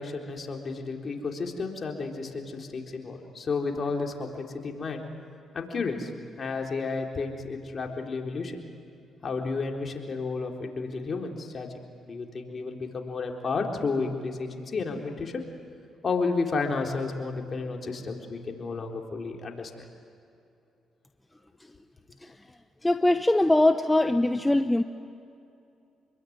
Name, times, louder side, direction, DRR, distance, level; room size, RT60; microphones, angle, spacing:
voice 1, 0.0-5.0 5.5-6.1 6.4-8.6 9.2-11.7 12.1-15.4 16.0-19.9, left 4 dB, 45° left, 2 dB, 4.0 m, -32 dB
voice 2, 22.8-24.8, left 1 dB, 15° left, 9 dB, 1.0 m, -22 dB
27.0 x 22.5 x 9.6 m, 2.6 s
supercardioid pair, 65°, 0 cm